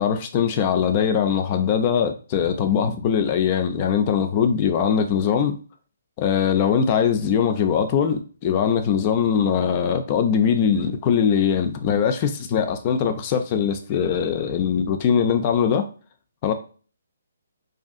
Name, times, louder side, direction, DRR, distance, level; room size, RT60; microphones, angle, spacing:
voice 1, 0.0-5.6 6.2-15.9 16.4-16.5, left 7 dB, 35° left, 0.4 m, -21 dB
2.6 x 2.4 x 2.4 m
figure-of-eight pair, 140°, 0 cm